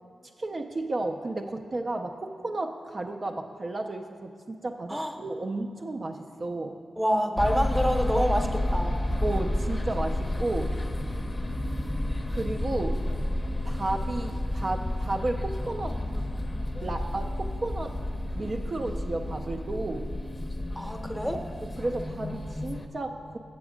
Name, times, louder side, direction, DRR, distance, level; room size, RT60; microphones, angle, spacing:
voice 1, 0.4-6.8 9.2-10.8 12.3-13.0 13.6-16.0 16.8-18.0 18.3-20.1 21.6-23.4, right 2 dB, 45° right, 3 dB, 0.4 m, -33 dB
voice 2, 7.0-8.9 20.7-21.4, equal, 5° right, 4 dB, 0.8 m, -27 dB
sound 1, 7.4-22.9, left 1 dB, 25° left, 0.6 m, -31 dB
7.4 x 7.1 x 5.0 m, 2.5 s
cardioid pair, 65°, 0 cm